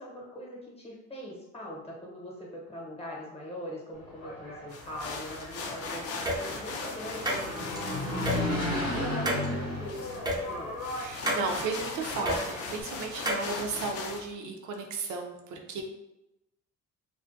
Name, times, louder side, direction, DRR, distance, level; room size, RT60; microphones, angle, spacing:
voice 1, 0.0-8.5 8.9-10.8, left 1 dB, 20° left, -3 dB, 0.8 m, -42 dB
Engine, 4.0-12.8, left 1 dB, 90° left, 0.9 m, -35 dB
sound 1, 4.7-14.3, left 3 dB, 50° left, 0.5 m, -39 dB
sound 2, 6.3-6.4 7.3-7.8 8.3-8.4 9.3-9.5 10.3-10.4 11.3-11.4 12.3-12.4 13.3-13.5, right 1 dB, 15° right, 0.4 m, -29 dB
voice 2, 11.0-15.8, right 4 dB, 70° right, 2 dB, 0.5 m, -34 dB
2.3 x 2.1 x 2.4 m, 0.91 s
cardioid pair, 90°, 30 cm